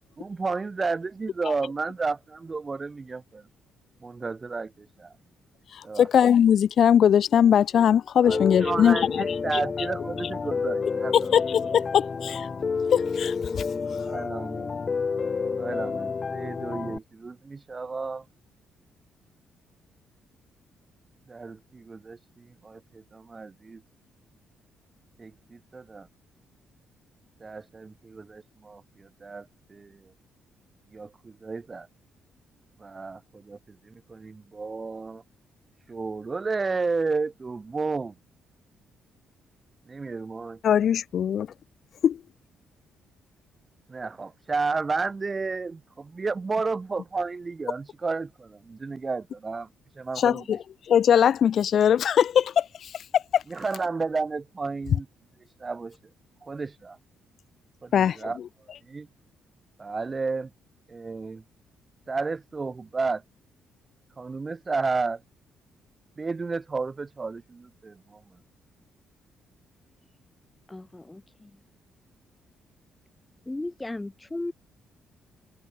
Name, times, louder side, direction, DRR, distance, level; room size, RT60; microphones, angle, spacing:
voice 1, 0.2-3.5 4.0-5.1 5.8-6.1 8.2-11.1 14.0-14.7 15.6-18.2 21.3-23.8 25.2-26.1 27.4-30.1 30.9-31.9 32.8-35.2 35.9-38.2 39.9-40.6 43.9-49.7 50.0-50.4 53.5-55.1 55.6-56.0 56.4-57.0 57.8-58.4 58.9-59.1 59.8-60.5 60.9-61.4 62.1-63.2 64.2-65.2 66.2-68.4, right 4 dB, 30° right, 0.5 m, -32 dB
voice 2, 5.7-9.6 11.1-12.5 12.9-14.1 40.6-41.5 42.0-42.2 50.2-53.4 57.9-58.5, left 9 dB, 60° left, 0.4 m, -21 dB
Piano, 8.3-17.0, left 5 dB, 35° left, 1.9 m, -29 dB
voice 3, 70.7-71.6 73.5-74.5, left 2 dB, 15° left, 4.1 m, -36 dB
cardioid pair, 90°, 0 cm